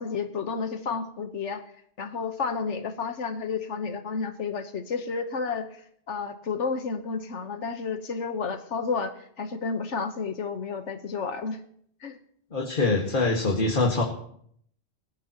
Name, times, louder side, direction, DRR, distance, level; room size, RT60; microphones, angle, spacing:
voice 1, 0.0-1.6 2.0-5.8 6.1-11.6 12.0-12.2, left 5 dB, 80° left, 8 dB, 1.5 m, -31 dB
voice 2, 12.5-14.0, left 3 dB, 45° left, -1 dB, 2.0 m, -24 dB
19.5 x 15.0 x 3.0 m, 0.67 s
omnidirectional pair, 1.2 m